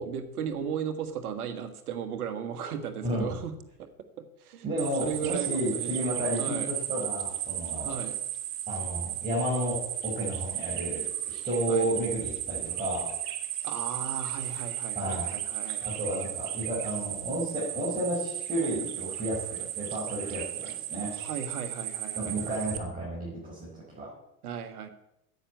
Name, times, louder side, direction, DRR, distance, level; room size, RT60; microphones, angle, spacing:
voice 1, 0.0-3.9 4.2-6.1 6.4-6.7 7.8-8.2 11.7-11.9 13.6-15.9 21.1-22.6 24.4-24.9, right 7 dB, 85° right, 10 dB, 1.7 m, -36 dB
voice 2, 3.0-3.3 4.6-7.9 8.7-9.8 10.0-13.1 14.9-15.3 15.8-21.1 22.2-24.1, right 1 dB, 20° right, -7 dB, 5.8 m, -32 dB
sound 1, 4.8-22.8, right 12 dB, 65° right, 1.7 m, -35 dB
10.0 x 9.0 x 8.3 m, 0.82 s
hypercardioid pair, 100°, 44 cm